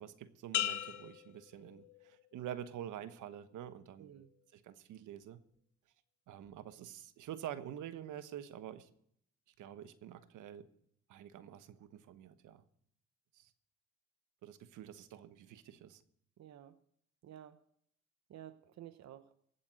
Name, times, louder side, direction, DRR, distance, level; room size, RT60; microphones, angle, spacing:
voice 1, 0.0-4.1 4.5-5.4 6.3-8.9 9.6-10.7 11.1-12.6 13.3-13.5 14.4-16.0, right 10 dB, 80° right, 1.2 m, -47 dB
sound 1, 0.5-2.3 2.8-3.3, left 12 dB, 70° left, 0.9 m, -39 dB
voice 2, 4.0-4.3 16.4-16.8 17.2-17.6 18.3-19.3, right 11 dB, 60° right, 0.9 m, -52 dB
16.0 x 8.6 x 6.3 m
cardioid pair, 90°, 30 cm